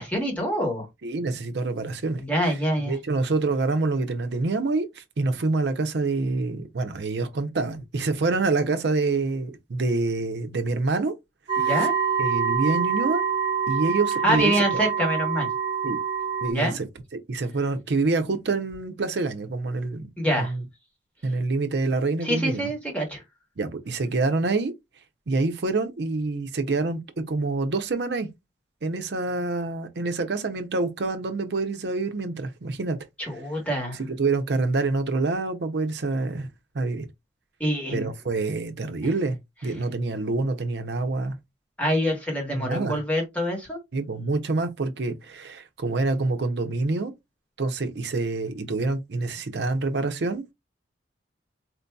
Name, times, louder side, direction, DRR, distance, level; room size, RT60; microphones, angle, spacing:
voice 1, 0.0-0.9 2.2-3.0 11.6-11.9 14.2-15.5 16.5-16.8 20.2-20.5 22.2-23.2 33.2-34.0 37.6-38.1 41.8-43.8, equal, 10° left, 1.2 m, -25 dB
voice 2, 1.0-2.2 2.9-11.2 11.5-11.9 12.2-13.2 13.7-14.6 15.8-16.0 16.4-16.9 17.3-20.1 20.4-20.6 21.2-22.7 23.6-24.7 25.3-28.3 28.8-33.0 34.0-36.5 36.7-37.1 37.9-39.4 39.6-41.4 42.5-43.0 43.9-47.1 47.6-50.4, right 3 dB, 65° right, 0.6 m, -26 dB
sound 1, 11.5-16.5, right 7 dB, 30° right, 1.3 m, -25 dB
4.3 x 2.7 x 2.2 m
head